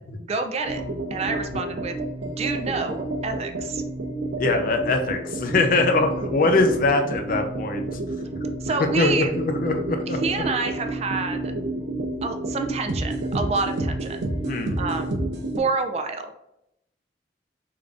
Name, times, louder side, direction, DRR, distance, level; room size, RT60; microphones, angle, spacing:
voice 1, 0.2-0.8 1.1-1.9 2.2-3.8 8.6-9.3 10.1-11.5 12.2-14.2 14.8-15.2 15.6-16.3, right 4 dB, 35° right, 7 dB, 0.4 m, -28 dB
sound 1, 0.6-15.6, right 2 dB, 85° right, 0.6 m, -30 dB
voice 2, 4.4-7.9 9.0-10.2 14.4-14.8, left 3 dB, 50° left, 5 dB, 0.5 m, -22 dB
3.7 x 2.5 x 3.3 m, 0.82 s
head